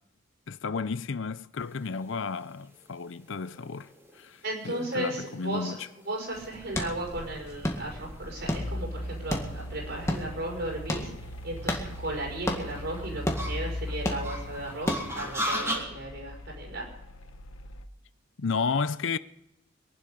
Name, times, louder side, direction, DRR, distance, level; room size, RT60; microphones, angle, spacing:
voice 1, 0.5-3.9 4.1-5.9 18.4-19.2, left 5 dB, 65° left, 0.6 m, -32 dB
sound 1, 1.9-15.8, equal, 15° right, 3.7 m, -39 dB
voice 2, 4.4-5.8 6.1-11.1 11.4-16.9, right 1 dB, 55° right, 6.1 m, -35 dB
sound 2, 6.3-15.3, left 1 dB, 15° left, 1.9 m, -35 dB
Mechanical fan, 6.6-17.9, left 1 dB, 85° left, 1.1 m, -40 dB
23.0 x 11.5 x 5.4 m
head